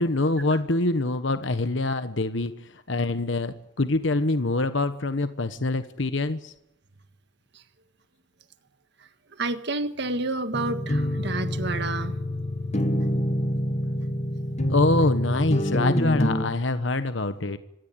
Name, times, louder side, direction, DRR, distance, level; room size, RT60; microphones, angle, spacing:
voice 1, 0.0-6.5 14.7-17.6, left 2 dB, 65° left, 11 dB, 1.2 m, -25 dB
voice 2, 9.4-12.2, right 2 dB, 60° right, 9 dB, 1.5 m, -29 dB
sound 1, 10.5-16.5, equal, 35° left, 1.7 m, -26 dB
26.0 x 17.0 x 9.1 m, 0.86 s
head